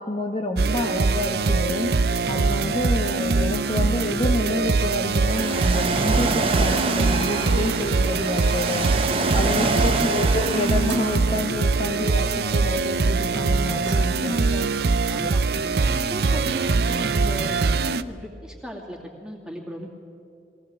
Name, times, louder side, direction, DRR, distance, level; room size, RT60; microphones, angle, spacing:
voice 1, 0.0-1.9 2.3-8.9 9.3-14.4 15.2-15.3, left 1 dB, 30° left, 2 dB, 1.0 m, -28 dB
sound 1, 0.6-18.0, right 4 dB, 60° right, 0.5 m, -23 dB
Ocean, 5.3-11.2, right 3 dB, 30° right, 1.0 m, -27 dB
voice 2, 8.7-9.1 9.6-10.1 14.0-14.7 15.1-15.5 15.7-19.9, equal, 5° right, -1 dB, 2.5 m, -37 dB
sound 2, 10.9-11.2 13.8-14.5 14.9-15.0 15.4-15.5 16.3-16.4 16.7-16.8 17.3-17.6 17.8-17.9 18.2-18.3, right 5 dB, 90° right, 1.9 m, -43 dB
21.5 x 17.0 x 7.6 m, 2.5 s
head